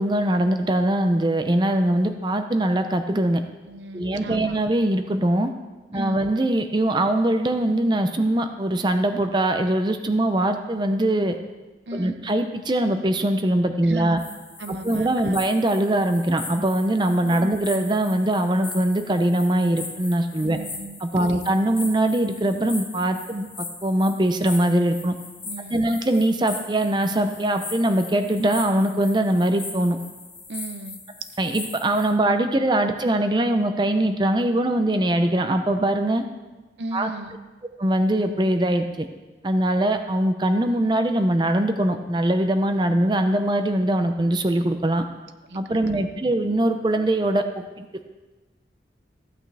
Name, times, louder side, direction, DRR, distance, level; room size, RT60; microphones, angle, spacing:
voice 1, 0.0-3.4 3.9-5.5 5.9-11.3 11.9-14.2 14.7-20.6 21.0-25.1 25.7-30.0 31.4-36.2 36.9-37.1 37.8-39.1 39.4-45.0 45.5-47.9, right 1 dB, 25° right, 7 dB, 0.5 m, -22 dB
voice 2, 3.7-4.6 5.9-6.2 11.9-12.2 13.9-14.2 14.6-15.4 17.2-17.6 20.4-21.4 25.4-25.9 30.5-31.0 36.8-37.4 45.5-46.0, right 2 dB, 85° right, 9 dB, 0.7 m, -35 dB
sound 1, 14.2-32.1, left 3 dB, 15° left, 2.7 m, -39 dB
15.0 x 8.7 x 3.4 m, 1.2 s
head